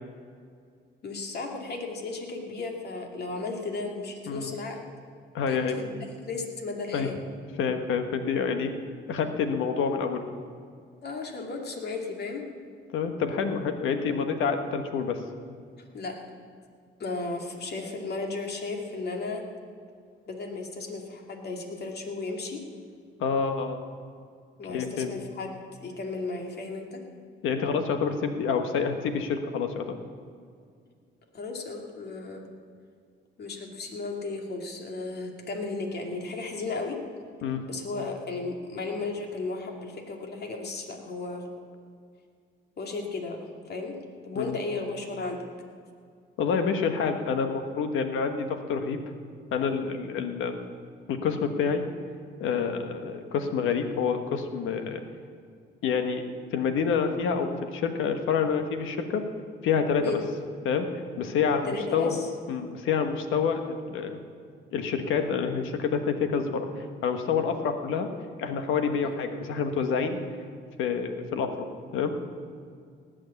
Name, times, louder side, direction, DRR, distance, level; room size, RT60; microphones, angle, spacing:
voice 1, 1.0-4.8 5.5-7.2 11.0-12.5 15.9-16.2 17.0-19.4 20.3-22.6 24.6-25.5 25.8-27.0 31.3-32.4 33.4-37.0 37.6-41.4 42.8-43.4 43.7-44.0 44.2-45.4 53.0-53.1 60.0-60.2 61.6-62.3 69.0-69.1, left 3 dB, 55° left, 1 dB, 2.4 m, -34 dB
voice 2, 5.3-5.8 6.9-7.1 7.6-8.7 9.1-10.2 12.9-15.2 23.2-23.8 24.7-25.1 27.4-30.0 37.4-37.6 44.3-44.5 46.4-49.0 49.5-50.6 51.1-51.8 52.4-55.0 55.8-56.2 56.5-59.2 59.6-60.2 60.6-60.9 61.2-62.1 62.5-64.2 64.7-66.7 67.0-68.1 68.4-70.2 70.8-71.7 71.9-72.1, left 6 dB, 85° left, 7 dB, 1.3 m, -27 dB
18.5 x 6.5 x 8.3 m, 2.2 s
cardioid pair, 90°, 20 cm